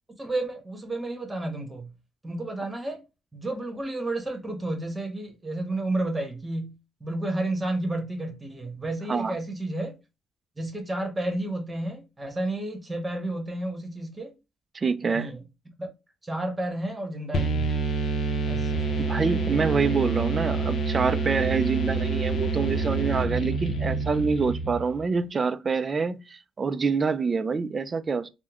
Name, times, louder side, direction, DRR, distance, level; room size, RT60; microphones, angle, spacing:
voice 1, 0.2-1.9 2.2-3.0 3.3-6.7 7.0-10.0 10.6-14.3 15.1-15.4 15.8-15.9 16.2-17.7 18.4-19.0, right 1 dB, 20° right, 1.1 m, -31 dB
voice 2, 14.7-15.4 19.1-28.3, right 5 dB, 35° right, 0.3 m, -26 dB
sound 1, 17.3-25.0, right 3 dB, 60° left, 0.7 m, -27 dB
3.5 x 2.1 x 2.9 m
cardioid pair, 90°, 0 cm